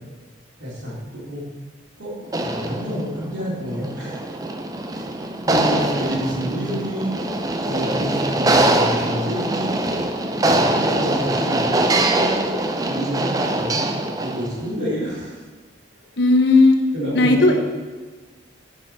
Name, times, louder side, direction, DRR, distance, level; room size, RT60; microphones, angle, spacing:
voice 1, 0.6-1.4 2.0-2.1 2.4-4.4 4.9-7.2 7.7-9.8 10.4-13.9 14.2-15.4 16.9-17.5, equal, 75° right, -6 dB, 3.1 m, -28 dB
sound 1, 2.3-14.6, right 2 dB, 20° right, 0.4 m, -23 dB
voice 2, 16.2-16.8 17.1-17.5, left 2 dB, 60° left, 4 dB, 0.9 m, -14 dB
10.5 x 5.4 x 4.4 m, 1.3 s
head